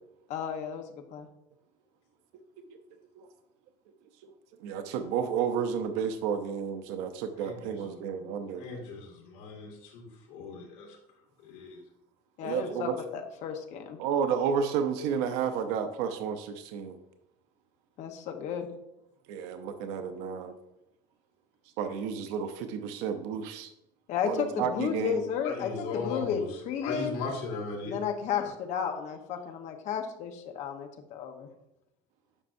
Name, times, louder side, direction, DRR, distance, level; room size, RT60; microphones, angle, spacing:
voice 1, 0.3-0.8 1.1-1.3 12.4-14.0 18.0-18.7 24.1-27.2 27.8-31.5, left 7 dB, 50° left, 5 dB, 1.0 m, -33 dB
voice 2, 4.6-8.7 12.4-13.0 14.0-17.0 19.3-20.5 21.8-23.7 24.2-25.2, right 7 dB, 90° right, 7 dB, 0.7 m, -31 dB
voice 3, 7.4-7.7 8.6-10.9 11.4-11.8 25.4-26.5 26.8-27.9, left 3 dB, 80° left, -1 dB, 2.2 m, -37 dB
9.8 x 6.2 x 2.6 m, 0.87 s
cardioid pair, 160°, 15 cm